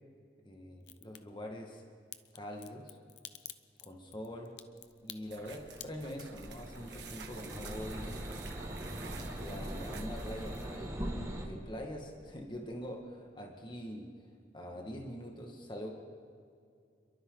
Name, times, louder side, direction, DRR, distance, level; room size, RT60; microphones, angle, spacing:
voice 1, 0.4-1.8 2.3-3.0 3.8-4.6 5.0-8.1 9.1-14.1 14.5-15.9, equal, 25° left, 1 dB, 1.8 m, -44 dB
Crack, 0.8-1.2 2.1-8.4 8.7-9.3 9.6-9.7, left 13 dB, 70° left, 0.8 m, -50 dB
sound 1, 5.2-10.8, right 5 dB, 75° right, 1.9 m, -50 dB
sound 2, 5.4-11.5, right 1 dB, 15° right, 2.1 m, -41 dB
29.0 x 22.5 x 4.0 m, 2.4 s
head